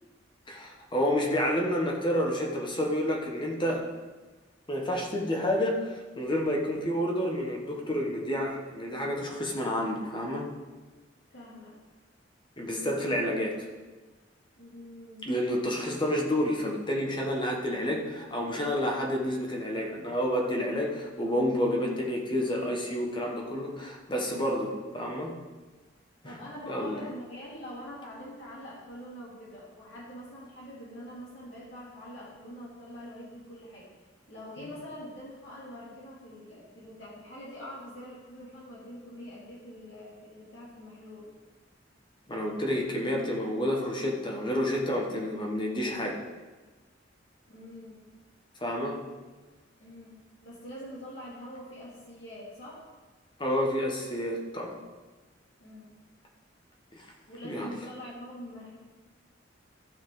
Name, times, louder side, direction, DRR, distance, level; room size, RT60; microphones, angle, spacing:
voice 1, 0.5-3.9 4.7-10.5 12.6-13.7 15.2-25.3 26.2-26.4 26.7-27.0 42.3-46.2 48.6-49.0 53.4-54.8 56.9-57.1 57.4-57.7, equal, 25° left, 0 dB, 1.5 m, -29 dB
voice 2, 11.3-11.7 14.6-15.3 26.2-33.9 34.3-41.3 47.5-48.0 49.8-52.9 55.6-55.9 57.3-58.8, equal, 70° left, -7 dB, 3.0 m, -44 dB
14.5 x 5.6 x 4.0 m, 1.2 s
head